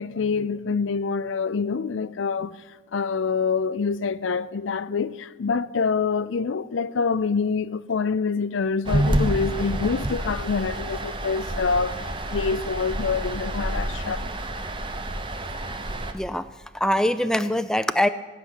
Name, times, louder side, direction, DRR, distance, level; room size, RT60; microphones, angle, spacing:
voice 1, 0.0-2.5 2.9-12.0 12.3-14.3, left 5 dB, 70° left, 0.5 m, -26 dB
sound 1, 8.8-16.1, right 1 dB, 25° right, 0.8 m, -28 dB
voice 2, 16.1-16.5 16.7-18.1, left 1 dB, 5° left, 0.3 m, -23 dB
15.5 x 6.1 x 9.7 m
head